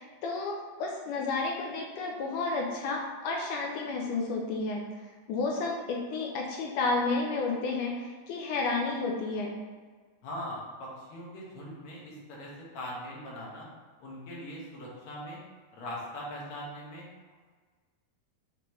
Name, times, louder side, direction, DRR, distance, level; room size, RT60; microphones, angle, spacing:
voice 1, 0.0-4.8 5.3-9.6, left 3 dB, 80° left, 0 dB, 1.9 m, -31 dB
voice 2, 10.2-12.5 12.7-13.7 14.0-15.4 15.7-17.0, equal, 55° left, -5 dB, 2.3 m, -41 dB
6.8 x 5.2 x 3.1 m, 1.5 s
omnidirectional pair, 4.2 m